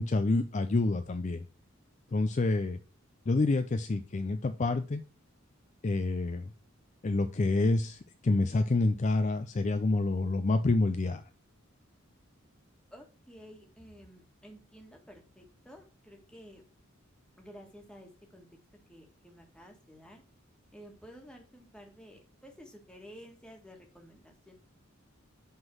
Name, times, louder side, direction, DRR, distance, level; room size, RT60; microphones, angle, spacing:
voice 1, 0.0-1.5 2.1-2.8 3.3-5.0 5.8-6.5 7.0-11.2, left 2 dB, 35° left, 9 dB, 0.4 m, -28 dB
voice 2, 12.9-16.6 17.4-18.5 18.9-20.2 20.7-24.5, equal, 5° left, 2 dB, 1.6 m, -52 dB
7.9 x 3.8 x 6.1 m, 0.35 s
head